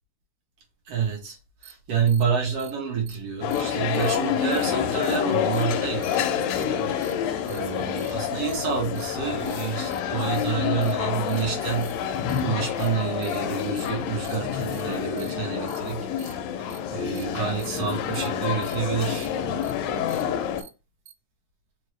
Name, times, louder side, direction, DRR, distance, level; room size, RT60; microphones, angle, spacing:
voice 1, 0.9-16.4 16.9-19.3, right 7 dB, 60° right, 1.7 m, -29 dB
sound 1, 1.6-1.7 2.1-2.2 2.6-2.7 3.1-3.2 3.5-3.6 4.0-4.2 4.5-4.7 5.0-5.2 5.5-5.6 6.0-6.2 6.5-6.6 7.0-7.1 7.5-7.6 8.0-8.1 8.5-8.6 9.0-9.1 9.5-9.6 9.9-10.0 10.3-10.5 10.8-10.9 11.3-11.4 11.8-11.9 12.3-12.4 12.8-12.9 13.2-13.4 13.8-13.9 14.2-14.4 14.7-14.8 15.2-15.3 15.7-15.8 16.2-16.3 16.7-16.8 17.2-17.3 17.6-17.8 18.1-18.3 18.6-18.8 19.1-19.3 19.6-19.7 20.1-20.2 20.6-20.7 21.1-21.2, right 11 dB, 80° right, 2.0 m, -46 dB
sound 2, 3.4-20.6, left 8 dB, 80° left, 1.6 m, -28 dB
4.9 x 2.5 x 3.2 m
omnidirectional pair, 3.6 m